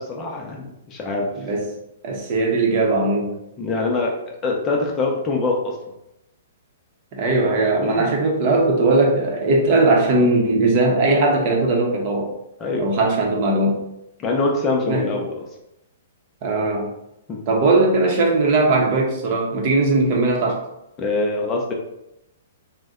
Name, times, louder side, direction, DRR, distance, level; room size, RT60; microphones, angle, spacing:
voice 1, 0.0-1.5 3.6-4.1 4.4-5.8 7.8-7.9 12.6-12.9 14.2-15.4 17.3-17.4 21.0-21.7, left 3 dB, 25° left, 0 dB, 0.5 m, -24 dB
voice 2, 2.0-3.3 7.1-12.3 12.8-13.8 14.9-15.1 16.4-16.9 17.5-20.6, right 2 dB, 40° right, 0 dB, 0.7 m, -19 dB
2.6 x 2.1 x 3.5 m, 0.84 s
hypercardioid pair, 140°, 0 cm